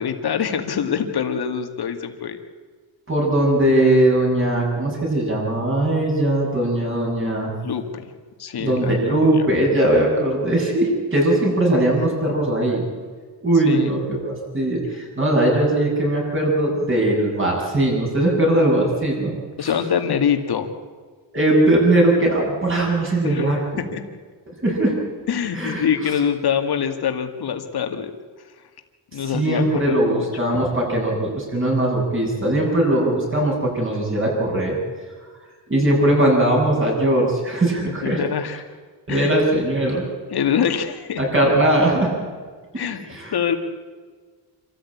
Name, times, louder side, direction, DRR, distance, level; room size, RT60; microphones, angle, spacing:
voice 1, 0.0-2.4 7.6-8.1 8.4-9.5 13.6-14.0 19.6-20.7 23.2-23.6 23.9-24.0 25.3-28.1 29.1-30.3 37.9-38.6 39.1-39.3 40.3-41.2 42.8-43.0 43.3-43.6, left 7 dB, 55° left, 6 dB, 2.2 m, -24 dB
voice 2, 3.1-7.5 8.6-12.8 13.4-19.3 19.6-19.7 21.3-23.6 24.6-24.9 25.5-25.8 29.2-34.7 35.7-38.2 39.1-40.0 41.2-42.1 43.1-43.3, right 1 dB, 25° right, -1 dB, 7.4 m, -20 dB
27.0 x 14.0 x 8.7 m, 1.5 s
cardioid pair, 125°, 45 cm